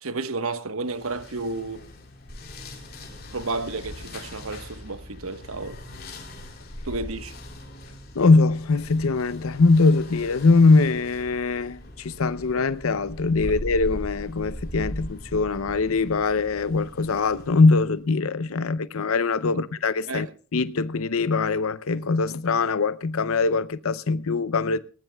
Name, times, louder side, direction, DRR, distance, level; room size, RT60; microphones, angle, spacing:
voice 1, 0.0-1.9 3.3-5.8 6.8-7.3 19.5-19.6 20.1-20.3, right 3 dB, 80° right, 1.2 m, -32 dB
sound 1, 0.9-18.0, left 1 dB, 45° left, 3.9 m, -40 dB
voice 2, 8.2-20.3 20.5-24.8, left 3 dB, 80° left, 0.6 m, -22 dB
19.0 x 18.5 x 2.3 m
head